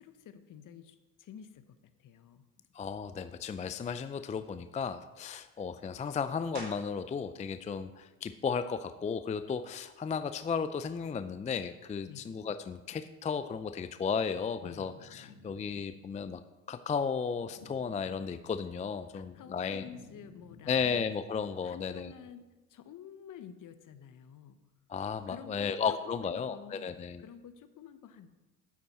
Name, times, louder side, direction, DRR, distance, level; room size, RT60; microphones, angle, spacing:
voice 1, 0.0-2.5 12.0-12.3 14.6-14.9 19.1-21.1 21.6-24.6 25.3-28.3, left 8 dB, 50° left, 11 dB, 1.0 m, -50 dB
voice 2, 2.7-16.4 16.7-19.8 20.7-22.1 24.9-27.2, left 6 dB, 20° left, 11 dB, 0.4 m, -34 dB
sound 1, 6.5-7.1 7.7-12.1 12.6-17.8 18.1-23.7, right 2 dB, 80° right, 3.7 m, -57 dB
sound 2, 14.6-16.2 17.2-18.7 19.1-21.4, left 3 dB, 85° left, 1.4 m, -55 dB
8.6 x 8.5 x 4.2 m, 1.1 s
supercardioid pair, 70°, 39 cm